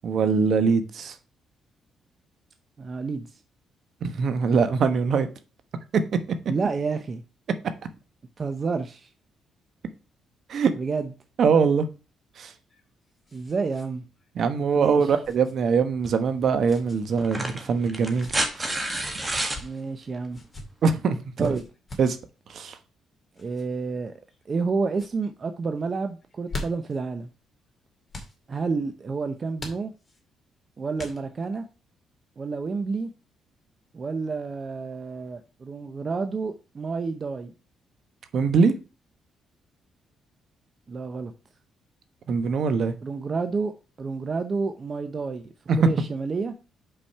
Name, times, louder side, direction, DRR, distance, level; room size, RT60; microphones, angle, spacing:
voice 1, 0.0-1.1 4.0-5.3 10.5-10.7 11.4-11.9 12.4-12.5 14.4-18.3 18.6-18.7 20.8-21.6 22.0-22.2 22.5-22.8 38.3-38.7 42.3-42.9 45.7-45.8, right 5 dB, 60° right, 1.0 m, -22 dB
voice 2, 2.8-3.4 6.5-7.2 8.4-9.1 10.7-11.1 13.3-14.0 14.8-15.1 19.6-20.4 21.4-21.6 23.4-24.2 24.5-27.3 28.5-29.9 30.8-31.6 32.4-33.1 33.9-37.5 40.9-41.3 43.0-43.7 44.0-45.5 45.8-46.5, right 4 dB, 40° right, 0.7 m, -29 dB
sound 1, 12.5-13.9 14.2-14.3 15.2-15.5 16.6-17.0 17.9-18.4 19.3-19.7 20.3-20.7 21.4-22.2 23.3-23.6 24.3-24.7 24.9-25.1 26.2-27.0 28.1-28.4 29.6-30.2 31.0-31.5, left 2 dB, 25° left, 2.2 m, -41 dB
sound 2, 16.0-16.2 17.2-19.6 21.1-21.2, right 1 dB, 15° right, 1.5 m, -29 dB
5.6 x 5.1 x 5.6 m
cardioid pair, 90°, 0 cm